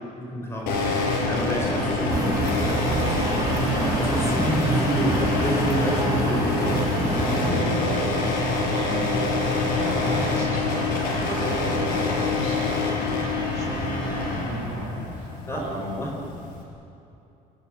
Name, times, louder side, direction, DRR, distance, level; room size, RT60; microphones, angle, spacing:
voice 1, 0.2-2.2 3.0-3.6 4.0-6.5 15.5-15.6 15.9-16.1, right 1 dB, 15° left, -1 dB, 4.7 m, -29 dB
sound 1, 0.7-16.6, left 3 dB, 80° left, 6.8 m, -26 dB
voice 2, 1.7-2.2 7.2-9.2 9.5-12.8 13.0-16.0, right 2 dB, 45° right, -1 dB, 6.7 m, -35 dB
sound 2, 2.1-7.5, right 4 dB, 20° right, 1.7 m, -27 dB
29.0 x 16.5 x 9.0 m, 2.8 s
cardioid pair, 170°, 16 cm